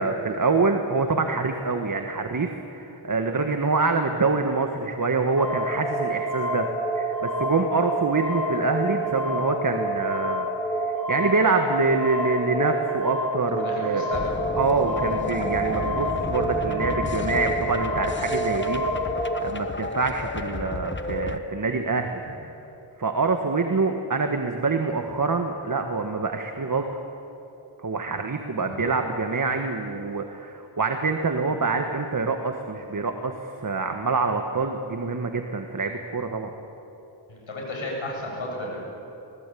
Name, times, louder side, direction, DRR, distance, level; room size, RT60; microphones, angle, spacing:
voice 1, 0.0-6.7 6.9-14.1 14.6-22.2 23.0-26.9 27.8-36.5, right 4 dB, 40° right, 5 dB, 1.6 m, -26 dB
sound 1, 5.4-19.3, right 1 dB, 5° left, 6.2 m, -28 dB
voice 2, 13.6-14.3 14.8-15.0 37.3-38.8, left 1 dB, 80° left, -2 dB, 7.3 m, -33 dB
sound 2, 14.1-21.4, left 3 dB, 25° left, 1.2 m, -32 dB
25.0 x 19.5 x 8.5 m, 2.9 s
wide cardioid pair, 75°, 47 cm